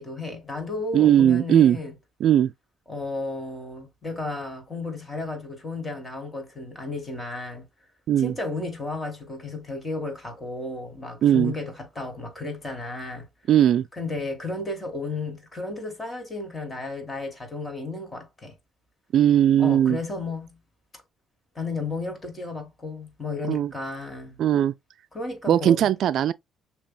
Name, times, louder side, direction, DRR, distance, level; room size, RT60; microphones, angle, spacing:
voice 1, 0.0-1.9 2.9-7.6 8.2-13.3 14.0-18.5 19.6-20.6 21.5-24.4 25.1-25.9, left 3 dB, 25° left, 2.7 m, -33 dB
voice 2, 0.9-1.8 2.2-2.5 8.1-8.3 11.2-11.5 13.5-13.9 19.1-20.0 23.5-23.7 24.4-24.7 25.5-26.3, right 10 dB, 65° right, 0.3 m, -19 dB
6.7 x 2.9 x 2.2 m
cardioid pair, 90°, 0 cm